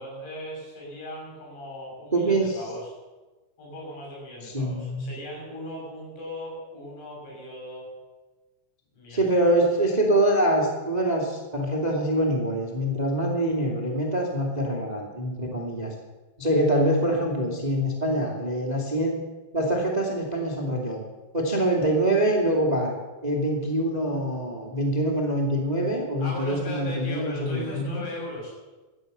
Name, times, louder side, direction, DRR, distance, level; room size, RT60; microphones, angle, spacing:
voice 1, 0.0-2.9 3.6-7.9 8.9-9.6 26.2-28.5, equal, 65° left, -2 dB, 8.7 m, -38 dB
voice 2, 2.1-2.6 4.4-5.1 9.1-15.9 16.4-19.2 19.5-21.0 21.3-22.9 23.2-28.0, right 1 dB, 60° right, 0 dB, 0.4 m, -25 dB
17.5 x 12.0 x 6.8 m, 1.2 s
omnidirectional pair, 5.6 m